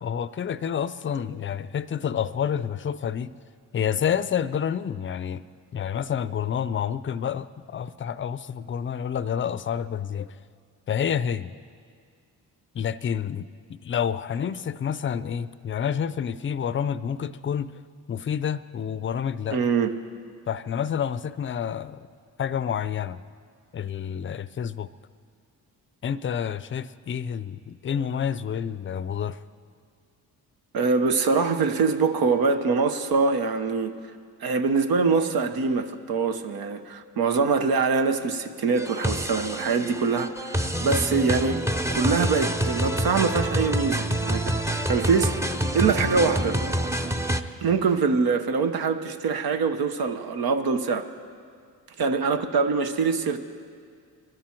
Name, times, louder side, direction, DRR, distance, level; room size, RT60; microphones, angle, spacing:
voice 1, 0.0-3.3 3.7-5.4 5.7-10.4 10.9-11.5 12.7-13.5 13.8-17.7 18.1-19.6 20.5-22.1 22.4-23.2 23.7-24.9 26.0-29.4, left 8 dB, 30° left, 15 dB, 0.5 m, -28 dB
voice 2, 19.5-19.9 30.7-33.9 34.4-41.6 41.9-44.5 44.9-45.4 45.7-46.6 47.6-51.1 52.0-53.4, right 4 dB, 70° right, 8 dB, 1.1 m, -24 dB
sound 1, 38.8-47.4, right 1 dB, 10° right, 0.7 m, -27 dB
23.0 x 13.0 x 4.6 m, 2.1 s
cardioid pair, 75°, 37 cm